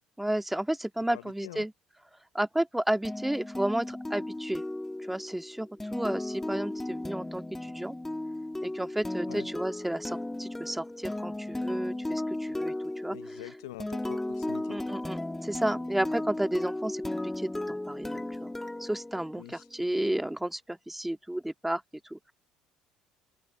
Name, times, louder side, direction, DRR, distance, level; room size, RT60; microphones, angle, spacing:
voice 1, 0.2-1.7 2.3-4.6 5.1-8.0 8.6-13.2 14.7-18.5 18.8-21.8 22.1-22.2, right 1 dB, 5° right, 1.9 m, -32 dB
voice 2, 1.1-1.7 9.3-9.5 13.1-14.8 19.4-19.7, left 17 dB, 80° left, 0.7 m, -45 dB
sound 1, 3.0-19.7, left 1 dB, 10° left, 1.9 m, -35 dB
open air
hypercardioid pair, 60°, 3 cm